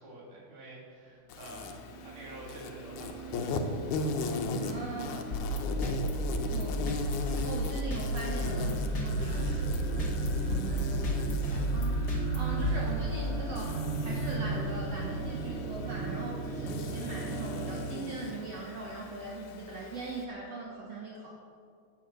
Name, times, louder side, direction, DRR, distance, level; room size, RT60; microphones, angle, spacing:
voice 1, 0.0-3.6 4.0-4.2, right 1 dB, 90° right, -5 dB, 5.0 m, -48 dB
Insect, 1.3-20.2, left 3 dB, 80° left, 2.4 m, -39 dB
sound 1, 1.6-17.8, right 4 dB, 20° right, 4.2 m, -37 dB
voice 2, 4.6-5.4 6.4-21.3, right 3 dB, 60° right, -3 dB, 2.5 m, -40 dB
sound 2, 5.3-13.5, equal, 35° left, 2.4 m, -33 dB
16.0 x 8.8 x 6.5 m, 2.3 s
omnidirectional pair, 3.5 m